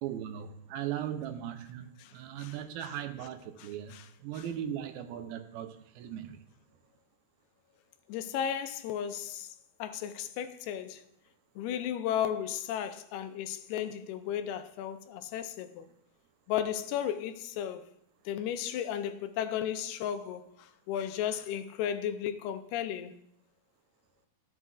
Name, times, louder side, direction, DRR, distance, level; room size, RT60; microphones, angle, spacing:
voice 1, 0.0-3.9 4.2-6.4, right 10 dB, 80° right, 2.5 m, -38 dB
voice 2, 3.6-4.1 4.4-4.5 8.1-9.5 9.8-11.0 11.6-15.9 16.5-17.8 18.3-23.1, left 9 dB, 90° left, 2.6 m, -34 dB
13.5 x 7.8 x 2.4 m
omnidirectional pair, 4.4 m